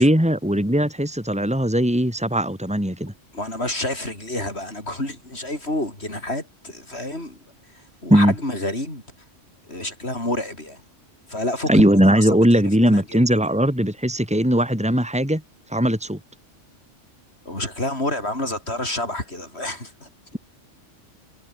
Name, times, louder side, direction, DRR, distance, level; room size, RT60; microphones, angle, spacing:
voice 1, 0.0-3.1 8.1-8.3 11.7-15.4 15.7-16.2, equal, 5° right, 4.1 m, -19 dB
voice 2, 3.3-7.4 8.0-9.0 9.7-10.8 11.3-13.2 17.5-20.1, left 1 dB, 55° left, 7.6 m, -29 dB
omnidirectional pair, 1.3 m